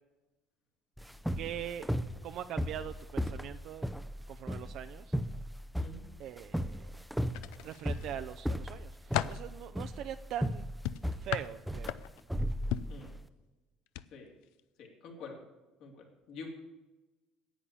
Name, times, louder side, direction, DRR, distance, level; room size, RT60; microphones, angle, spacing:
sound 1, 1.0-13.2, equal, ahead, 0.5 m, -36 dB
voice 1, 1.3-1.9 2.2-3.9 4.3-5.1 6.2-6.9 7.6-10.7 11.1-12.0, right 10 dB, 60° right, 9 dB, 0.5 m, -42 dB
sound 2, 7.3-8.1 8.6-9.5 10.8-12.3 12.7-13.0 13.9-14.1 14.4-14.6, left 13 dB, 85° left, 0.4 m, -36 dB
voice 2, 14.8-15.4 15.8-16.5, left 4 dB, 70° left, 0 dB, 3.2 m, -47 dB
10.0 x 8.7 x 6.9 m, 1.1 s
cardioid pair, 120°, 0 cm